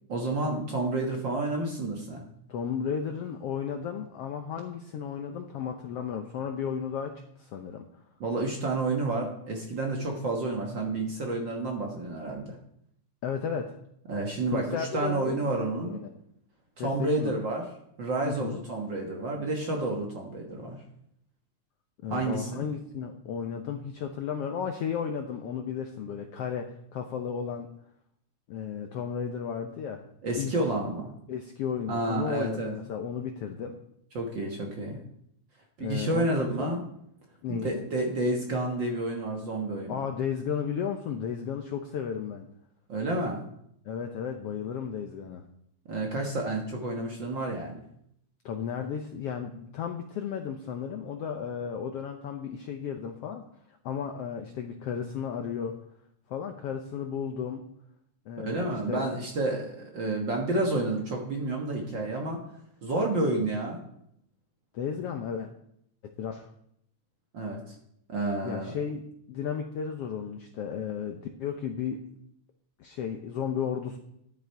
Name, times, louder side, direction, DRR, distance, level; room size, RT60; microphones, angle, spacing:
voice 1, 0.1-2.2 8.2-12.6 14.1-16.0 16.8-17.6 18.0-20.8 22.1-22.6 30.2-31.1 31.9-32.7 34.1-35.0 35.8-36.8 37.5-40.0 42.9-43.4 45.9-47.8 58.4-62.4 62.8-63.8 67.3-67.7 68.1-68.7, right 2 dB, 50° right, 1 dB, 1.5 m, -30 dB
voice 2, 2.5-7.9 13.2-13.8 14.5-15.4 15.9-16.1 16.8-17.3 18.2-18.6 22.0-27.7 28.5-30.0 30.4-30.5 31.3-33.8 35.8-36.8 37.4-37.8 39.9-42.5 43.8-45.4 48.4-53.4 53.8-55.7 56.3-57.6 58.3-59.0 64.7-65.5 66.0-66.5 68.4-69.0 69.3-72.0 72.8-74.0, left 7 dB, 75° left, 5 dB, 1.4 m, -34 dB
12.0 x 9.8 x 4.6 m, 0.74 s
omnidirectional pair, 3.6 m